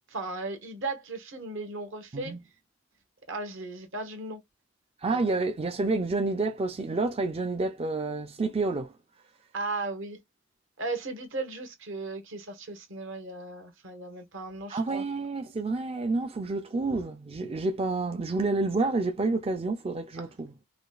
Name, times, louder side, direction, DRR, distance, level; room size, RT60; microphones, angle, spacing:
voice 1, 0.0-2.3 3.3-4.4 5.1-5.2 9.5-10.2 10.8-15.0 16.9-17.0, right 3 dB, 65° right, 1.3 m, -36 dB
voice 2, 5.0-9.0 14.7-20.5, right 3 dB, 30° right, 0.4 m, -29 dB
4.9 x 2.3 x 2.4 m
head